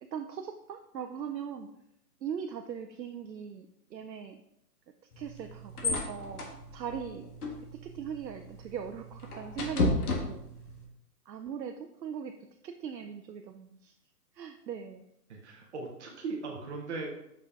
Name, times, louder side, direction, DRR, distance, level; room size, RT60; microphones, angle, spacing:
voice 1, 0.0-1.7 2.2-4.4 5.2-6.4 6.7-7.3 7.7-10.5 11.3-12.4 12.6-13.9 14.3-15.1, right 7 dB, 90° right, 6 dB, 0.6 m, -40 dB
sound 1, 5.1-10.9, left 2 dB, 65° left, 1.5 m, -34 dB
voice 2, 15.3-17.1, right 4 dB, 45° right, 0 dB, 1.0 m, -38 dB
5.5 x 5.0 x 3.5 m, 0.81 s
hypercardioid pair, 145°, 49 cm